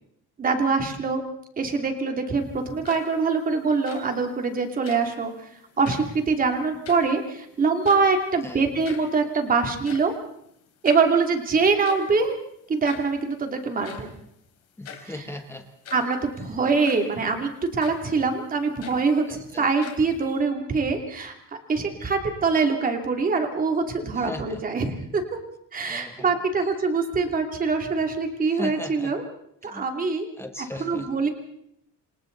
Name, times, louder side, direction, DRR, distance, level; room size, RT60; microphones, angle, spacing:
voice 1, 0.4-1.2 1.6-5.3 5.8-10.1 10.8-12.4 12.7-14.1 15.1-15.2 15.9-21.3 21.7-25.2 25.7-29.2 29.6-30.3 30.8-31.3, right 4 dB, 25° right, 4 dB, 2.8 m, -24 dB
sound 1, 2.7-3.3 3.7-4.2 4.8-5.2 5.7-6.2 6.6-7.4 7.7-8.3 8.6-8.7 8.8-9.2 9.7-11.2 11.8-12.2 12.8-13.2 13.8-14.2 14.8-15.2 15.7-16.2 16.8-17.2 17.8-18.1 18.6-19.4 19.8-20.4, left 6 dB, 50° left, 3.5 m, -42 dB
voice 2, 8.4-8.8 14.8-15.7 16.4-16.6 19.3-19.7 24.1-24.6 25.8-26.4 28.5-29.1 29.7-29.8 30.4-31.1, left 2 dB, 10° left, 6 dB, 1.3 m, -38 dB
28.0 x 26.5 x 4.0 m, 0.72 s
cardioid pair, 175°, 32 cm